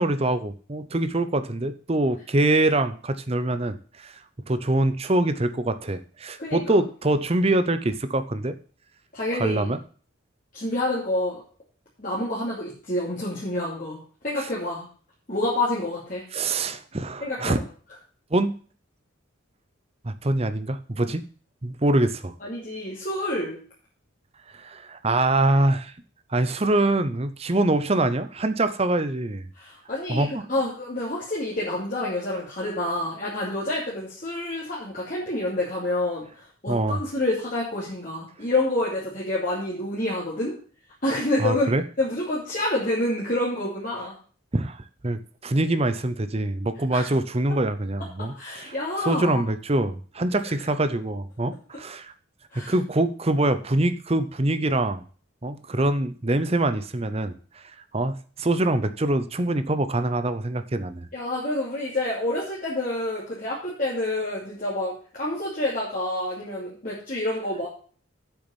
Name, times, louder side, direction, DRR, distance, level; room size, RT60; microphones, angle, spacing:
voice 1, 0.0-4.2 4.5-8.6 9.4-9.8 16.3-17.6 18.3-18.5 20.0-21.2 21.6-22.3 24.5-25.9 26.3-29.4 30.1-30.4 36.7-37.0 41.4-41.8 44.5-48.7 49.0-52.1 52.7-55.0 55.4-57.3 57.9-61.1, right 2 dB, 30° right, 12 dB, 0.7 m, -24 dB
voice 2, 9.1-9.7 10.5-11.4 12.0-14.9 15.3-16.2 17.2-17.6 22.4-23.6 29.6-40.5 41.0-41.7 42.0-44.1 46.9-47.1 48.2-49.4 50.4-50.5 52.5-52.7 61.1-67.7, left 1 dB, 40° left, -6 dB, 2.7 m, -28 dB
8.3 x 6.6 x 7.1 m, 0.41 s
head